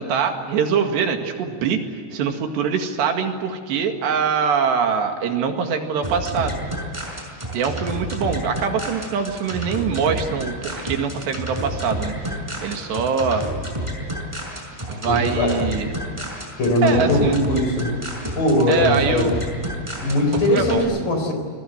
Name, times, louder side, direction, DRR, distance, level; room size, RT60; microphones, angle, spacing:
voice 1, 0.0-1.8 2.1-6.6 7.5-13.4 14.9-15.9 16.8-17.4 18.7-19.3 20.3-20.9, right 6 dB, 70° right, 4 dB, 4.1 m, -23 dB
sound 1, 6.0-20.8, right 1 dB, 5° right, 5.2 m, -30 dB
voice 2, 15.0-15.6 16.6-17.9 18.3-19.3 20.0-21.3, left 1 dB, 50° left, 5 dB, 5.6 m, -20 dB
28.5 x 21.5 x 7.9 m, 2.1 s
omnidirectional pair, 5.2 m